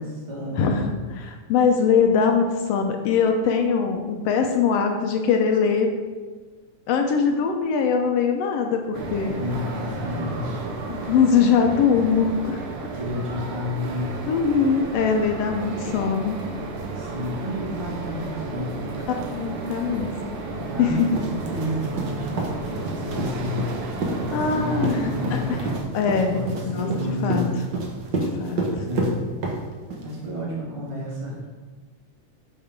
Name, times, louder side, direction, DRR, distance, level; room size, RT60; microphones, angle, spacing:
voice 1, 0.0-0.7 9.2-10.7 12.9-14.2 16.9-18.9 20.4-23.7 24.2-25.7 26.3-27.6 28.6-29.2 30.0-31.5, left 1 dB, 15° right, -5 dB, 1.4 m, -31 dB
voice 2, 0.6-5.9 6.9-9.4 10.9-12.6 14.3-16.4 19.3-20.1 20.8-21.1 24.3-25.6 25.9-26.3 26.7-27.4 28.2-28.8, left 6 dB, 75° left, 4 dB, 1.5 m, -22 dB
sound 1, 8.9-25.8, right 3 dB, 85° right, 2.4 m, -33 dB
sound 2, 21.0-30.1, right 2 dB, 65° right, 1.1 m, -29 dB
7.1 x 5.4 x 5.1 m, 1.4 s
omnidirectional pair, 3.4 m